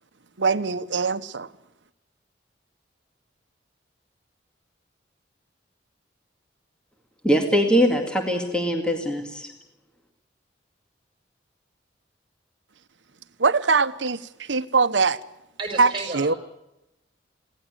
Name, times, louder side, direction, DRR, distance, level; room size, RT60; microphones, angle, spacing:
voice 1, 0.4-1.5 13.4-15.2 15.8-16.3, right 4 dB, 85° right, 1.0 m, -22 dB
voice 2, 7.2-9.5, equal, 5° left, 2.1 m, -22 dB
voice 3, 15.6-16.4, right 3 dB, 25° right, 5.6 m, -32 dB
23.5 x 17.5 x 9.2 m
head